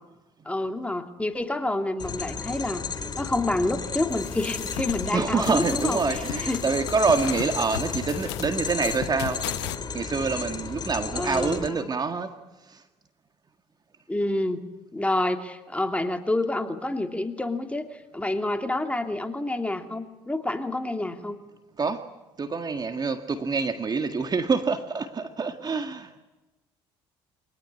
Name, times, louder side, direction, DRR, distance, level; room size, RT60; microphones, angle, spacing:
voice 1, 0.4-2.8 3.2-6.6 11.2-11.9 14.1-14.7 14.9-21.4, left 2 dB, 10° left, 2.8 m, -28 dB
sound 1, 2.0-11.7, left 5 dB, 30° left, 2.5 m, -33 dB
sound 2, 4.1-9.8, left 15 dB, 90° left, 0.8 m, -36 dB
voice 2, 5.1-9.4 9.9-12.3 12.7-12.8 21.8-22.1 22.4-26.2, right 4 dB, 30° right, 1.8 m, -26 dB
25.0 x 18.5 x 9.7 m
supercardioid pair, 70°, 13 cm